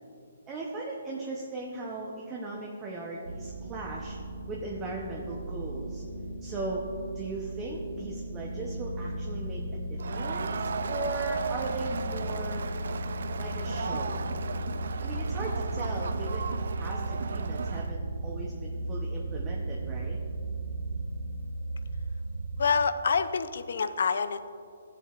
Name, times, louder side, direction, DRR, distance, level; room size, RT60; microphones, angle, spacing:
voice 1, 0.5-4.2 4.5-6.0 6.4-6.8 7.1-9.6 9.9-12.7 13.4-14.2 15.0-20.2, right 2 dB, 15° right, -3 dB, 0.7 m, -38 dB
sound 1, 3.2-22.9, right 1 dB, 85° right, 0.9 m, -35 dB
Crowd, 10.0-17.9, right 5 dB, 65° right, 0.3 m, -36 dB
voice 2, 22.6-24.5, left 5 dB, 60° left, 12 dB, 0.4 m, -27 dB
14.0 x 7.1 x 2.4 m, 2.4 s
hypercardioid pair, 170°, 0 cm